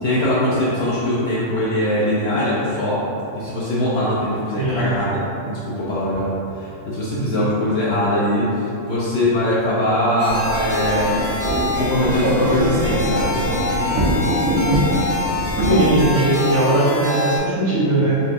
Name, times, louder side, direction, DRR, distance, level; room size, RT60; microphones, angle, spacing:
voice 1, 0.0-3.0 3.3-8.5 8.8-11.3 11.8-13.3, left 1 dB, 65° left, -9 dB, 0.7 m, -21 dB
voice 2, 7.1-7.4 15.6-18.2, right 1 dB, 60° right, -9 dB, 1.1 m, -19 dB
sound 1, 10.2-17.4, left 2 dB, 20° right, 0.7 m, -25 dB
sound 2, 10.3-16.1, right 1 dB, 80° right, 1.2 m, -23 dB
3.8 x 2.3 x 2.5 m, 2.7 s
omnidirectional pair, 1.5 m